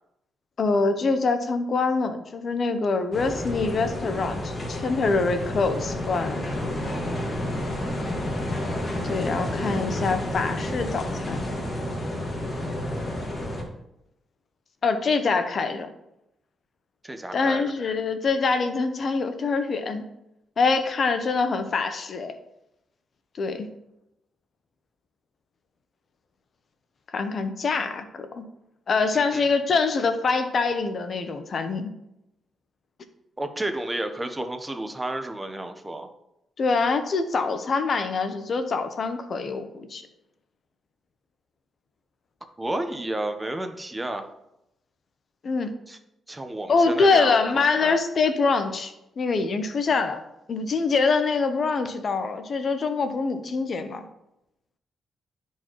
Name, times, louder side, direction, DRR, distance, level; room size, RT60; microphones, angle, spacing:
voice 1, 0.6-6.5 9.0-11.4 14.8-15.9 17.3-20.0 20.6-22.4 23.4-23.7 27.1-28.4 28.9-31.9 36.6-40.0 45.4-45.7 46.7-50.2 50.5-54.1, left 4 dB, 55° left, 9 dB, 0.8 m, -24 dB
sound 1, 3.1-13.6, left 1 dB, 35° left, 1.9 m, -30 dB
voice 2, 17.0-17.7 29.1-29.4 33.4-36.1 42.6-44.3 45.9-46.0 46.3-48.0, right 1 dB, 15° right, 7 dB, 0.9 m, -31 dB
11.5 x 4.6 x 3.1 m, 0.86 s
cardioid pair, 70°, 0 cm